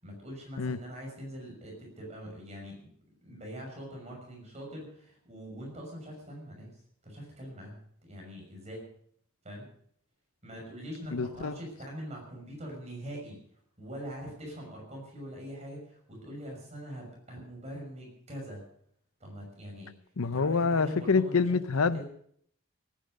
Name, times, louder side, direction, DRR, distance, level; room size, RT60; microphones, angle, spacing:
voice 1, 0.0-2.9 3.2-8.9 9.4-9.7 10.4-13.4 13.8-18.6 19.2-19.9 20.2-21.4 21.7-22.0, equal, 30° right, -1 dB, 6.2 m, -43 dB
voice 2, 11.1-11.6 20.2-22.0, left 4 dB, 85° left, 15 dB, 0.7 m, -27 dB
18.5 x 10.5 x 6.5 m, 0.64 s
head